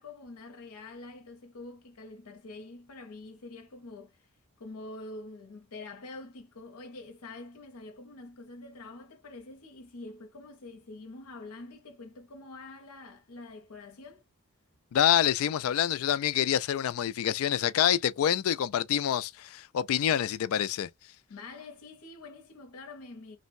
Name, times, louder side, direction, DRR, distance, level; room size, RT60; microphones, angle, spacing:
voice 1, 0.0-4.3 4.6-14.2 21.3-23.4, left 2 dB, 80° left, 0.7 m, -46 dB
voice 2, 14.9-20.9, left 10 dB, 65° left, 0.3 m, -26 dB
3.2 x 2.1 x 2.5 m
head